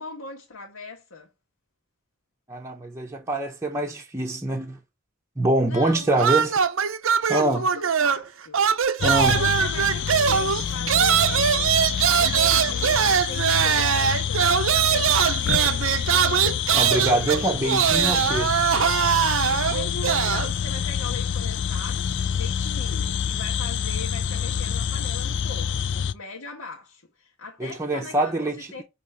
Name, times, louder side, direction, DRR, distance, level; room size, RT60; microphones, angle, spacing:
voice 1, 0.0-1.3 5.6-6.4 7.3-8.7 9.3-16.7 19.4-28.8, left 3 dB, 85° left, 1.5 m, -40 dB
voice 2, 2.5-4.8 5.4-6.5 7.3-7.6 9.0-9.4 16.7-18.5 27.6-28.8, right 2 dB, 15° right, 0.7 m, -24 dB
sound 1, 6.2-8.3 8.5-20.5, right 8 dB, 70° right, 0.6 m, -22 dB
sound 2, 9.0-26.1, left 8 dB, 60° left, 0.4 m, -27 dB
6.2 x 3.0 x 5.5 m
head